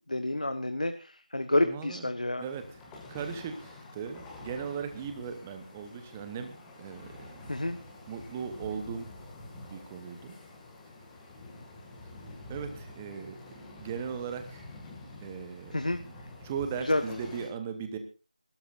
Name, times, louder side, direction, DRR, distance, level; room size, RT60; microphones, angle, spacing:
voice 1, 0.1-2.4 7.5-7.8 15.7-16.0 16.8-17.0, left 1 dB, 75° left, 7 dB, 1.3 m, -29 dB
voice 2, 1.6-2.1 2.4-7.4 8.1-9.1 9.6-10.4 12.5-14.6 15.2-16.1 16.4-18.0, right 6 dB, 10° right, 8 dB, 0.9 m, -38 dB
sound 1, 2.4-17.5, left 2 dB, 5° left, 2.0 m, -48 dB
25.5 x 13.0 x 2.5 m, 0.34 s
figure-of-eight pair, 165°, 4 cm